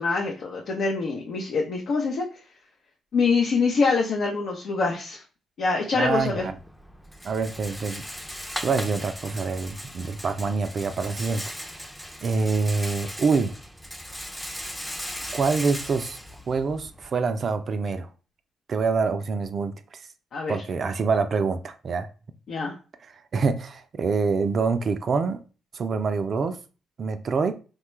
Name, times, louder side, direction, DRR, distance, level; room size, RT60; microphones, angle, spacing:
voice 1, 0.0-2.2 3.1-5.2 5.6-6.5 20.3-20.6 22.5-22.7, left 4 dB, 65° left, 0.5 m, -25 dB
voice 2, 5.9-6.5 7.2-8.1 8.6-11.7 12.2-13.6 15.3-16.2 16.5-18.1 18.7-20.0 20.5-22.1 23.0-25.4 25.7-26.6 27.0-27.6, right 4 dB, 55° right, 0.3 m, -26 dB
Rattle, 6.0-17.1, equal, 5° left, 0.5 m, -38 dB
3.2 x 2.2 x 3.1 m
hypercardioid pair, 50°, 0 cm